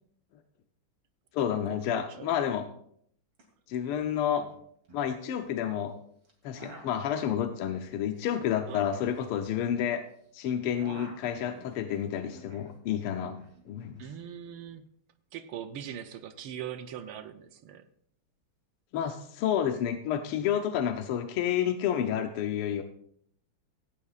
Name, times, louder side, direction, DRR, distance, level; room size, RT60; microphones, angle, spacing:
voice 1, 1.3-2.7 3.7-4.5 4.9-5.9 6.4-10.0 10.3-13.4 13.7-14.1 18.9-22.8, left 9 dB, 85° left, 1.7 m, -30 dB
voice 2, 1.9-2.3 8.7-9.1 14.0-14.8 15.3-17.8, right 9 dB, 80° right, 1.6 m, -41 dB
sound 1, 3.3-3.4 3.7-4.1 4.4-5.6 6.2-10.2 10.5-12.8 13.0-14.0, right 2 dB, 60° right, 3.6 m, -51 dB
17.0 x 16.5 x 2.4 m
omnidirectional pair, 2.4 m